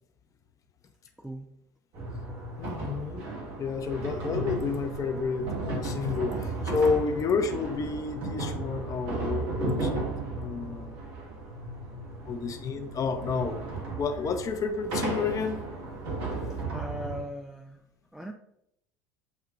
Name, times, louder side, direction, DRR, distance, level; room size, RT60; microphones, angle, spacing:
voice 1, 1.2-1.5 16.4-17.8 18.1-18.3, equal, 5° right, 4 dB, 0.4 m, -39 dB
sound 1, 1.9-17.2, right 2 dB, 60° right, 1.5 m, -34 dB
voice 2, 2.6-3.3 3.6-10.1 10.3-11.1 12.2-13.6 14.0-15.6, left 5 dB, 35° left, 6 dB, 0.7 m, -30 dB
8.0 x 2.7 x 2.4 m, 0.76 s
hypercardioid pair, 80°, 10 cm